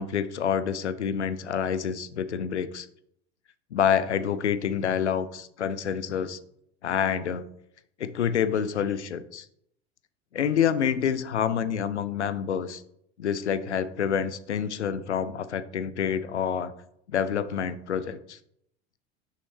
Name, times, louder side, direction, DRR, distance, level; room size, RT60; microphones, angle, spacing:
voice 1, 0.0-2.9 3.7-6.4 6.8-7.4 8.0-9.5 10.3-12.8 13.2-16.7 17.1-18.4, left 8 dB, 85° left, 14 dB, 0.5 m, -27 dB
6.2 x 5.6 x 3.1 m, 0.74 s
figure-of-eight pair, 75°, 33 cm